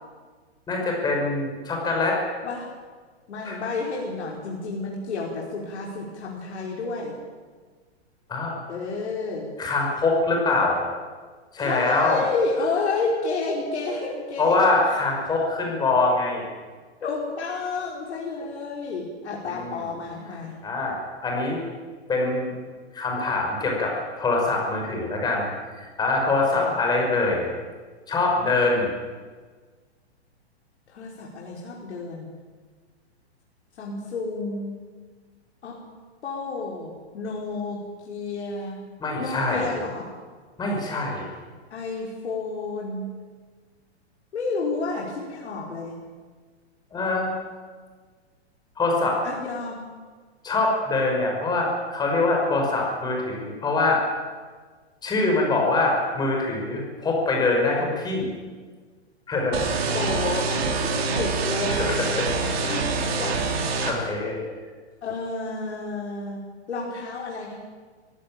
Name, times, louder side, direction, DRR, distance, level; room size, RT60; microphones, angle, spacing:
voice 1, 0.7-2.2 3.4-3.6 8.3-8.6 9.6-10.8 11.5-12.3 14.4-16.5 19.5-19.8 20.6-21.6 22.1-22.5 22.9-27.5 28.1-28.9 39.0-39.7 40.6-41.3 46.9-47.4 48.8-49.2 50.4-54.0 55.0-58.3 59.3-59.6 61.7-62.0 62.6-62.7 63.8-64.4, left 3 dB, 10° left, 0 dB, 5.7 m, -24 dB
voice 2, 3.3-7.1 8.7-9.5 11.6-14.6 17.0-20.6 26.5-26.8 30.9-32.3 33.8-34.8 35.6-35.8 36.2-38.8 39.2-40.1 41.7-43.1 44.3-46.0 49.2-49.9 59.8-63.6 65.0-66.4 66.7-67.6, left 3 dB, 75° left, -2 dB, 5.0 m, -30 dB
sound 1, 59.5-63.9, right 4 dB, 65° right, 4.2 m, -26 dB
23.5 x 16.0 x 8.9 m, 1.5 s
hypercardioid pair, 155°, 34 cm